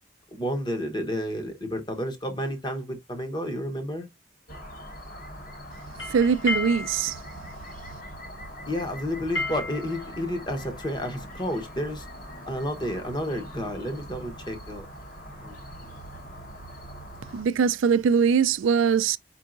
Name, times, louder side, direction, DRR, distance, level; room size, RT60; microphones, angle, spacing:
voice 1, 0.3-4.1 8.7-12.1 12.5-14.9 15.4-15.9, equal, 25° left, 0.9 m, -31 dB
sound 1, 4.5-17.4, equal, 45° left, 1.2 m, -42 dB
sound 2, 5.8-11.5, left 2 dB, 85° left, 1.7 m, -35 dB
voice 2, 6.0-7.2 17.3-19.2, right 6 dB, 85° right, 0.4 m, -22 dB
4.8 x 4.5 x 2.5 m
head